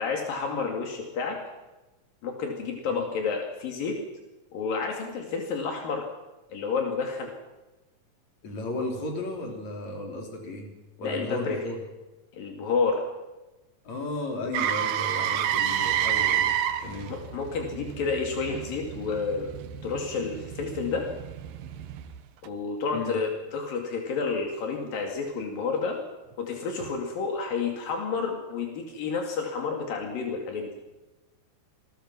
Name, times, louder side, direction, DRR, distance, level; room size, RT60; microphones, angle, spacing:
voice 1, 0.0-1.4 2.2-4.0 4.5-6.1 6.5-7.3 11.0-11.6 12.3-13.1 17.1-19.5 19.8-21.1 22.4-26.0 26.4-30.7, left 5 dB, 80° left, 2 dB, 4.2 m, -30 dB
voice 2, 8.4-10.7 11.0-11.8 13.9-16.5 16.8-17.1 22.9-23.2, left 2 dB, 55° left, 2 dB, 5.1 m, -34 dB
Motor vehicle (road), 14.5-22.5 26.8-26.9, right 10 dB, 80° right, 3.0 m, -30 dB
27.5 x 22.0 x 6.0 m, 1.1 s
omnidirectional pair, 4.0 m